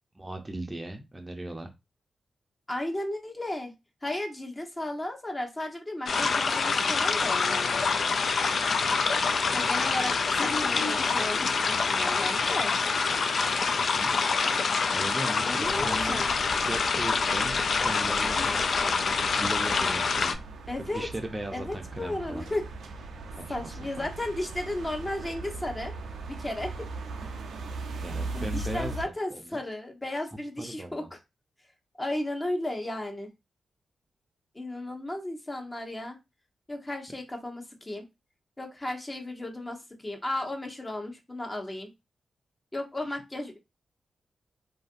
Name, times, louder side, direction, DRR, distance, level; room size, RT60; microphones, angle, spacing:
voice 1, 0.2-1.7 13.8-14.1 14.9-16.2 16.7-20.4 20.8-22.5 23.3-23.6 24.0-24.1 28.0-28.9 29.3-29.6 30.6-31.1 43.1-43.2, right 1 dB, 25° right, 5 dB, 0.5 m, -38 dB
voice 2, 2.7-3.7 4.0-7.9 9.5-12.7 15.4-16.3 20.7-21.1 21.5-22.7 23.5-25.9 26.3-26.9 28.3-31.2 32.0-33.3 34.5-36.2 36.7-38.0 38.6-41.9 42.7-43.6, left 1 dB, 25° left, 3 dB, 0.8 m, -34 dB
sound 1, 6.1-20.3, left 4 dB, 65° left, 0.3 m, -26 dB
sound 2, 15.6-29.1, right 3 dB, 85° right, 0.4 m, -39 dB
2.6 x 2.4 x 2.4 m, 0.23 s
supercardioid pair, 50°, 0 cm